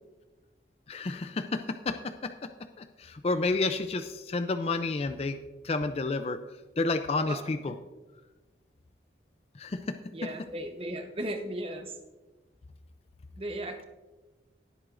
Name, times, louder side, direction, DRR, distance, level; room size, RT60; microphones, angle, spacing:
voice 1, 0.9-2.0 2.2-2.3 2.8-5.4 5.6-6.4 6.8-7.7 9.6-9.8, left 3 dB, 35° left, 9 dB, 0.4 m, -30 dB
voice 2, 7.3-7.7 10.1-12.0 13.4-13.8, right 1 dB, 30° right, 6 dB, 0.9 m, -36 dB
17.5 x 7.9 x 2.5 m, 1.2 s
head